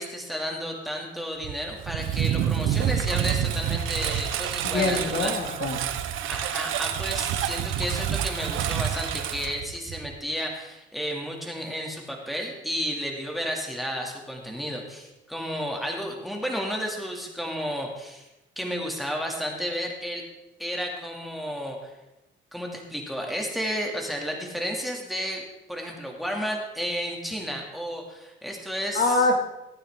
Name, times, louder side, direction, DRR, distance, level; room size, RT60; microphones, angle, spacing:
voice 1, 0.0-5.3 6.2-18.3 18.6-20.3 20.6-21.9 22.5-29.3, equal, ahead, 0 dB, 2.5 m, -32 dB
Engine, 1.4-10.2, right 10 dB, 85° right, 0.9 m, -28 dB
voice 2, 4.6-5.8 28.9-29.4, left 2 dB, 55° left, 2 dB, 2.2 m, -24 dB
16.0 x 9.1 x 3.7 m, 0.96 s
cardioid pair, 90°, 20 cm